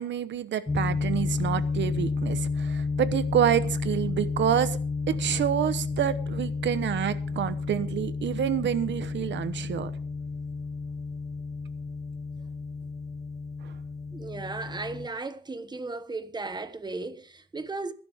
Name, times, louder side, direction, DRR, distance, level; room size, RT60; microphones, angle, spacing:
voice 1, 0.0-4.8 5.1-9.9 13.6-13.7, right 10 dB, 85° right, 1.1 m, -28 dB
sound 1, 0.7-15.1, left 4 dB, 15° left, 0.7 m, -31 dB
voice 2, 14.1-17.9, right 3 dB, 25° right, 1.3 m, -35 dB
20.0 x 11.5 x 3.6 m
cardioid pair, 100°, 18 cm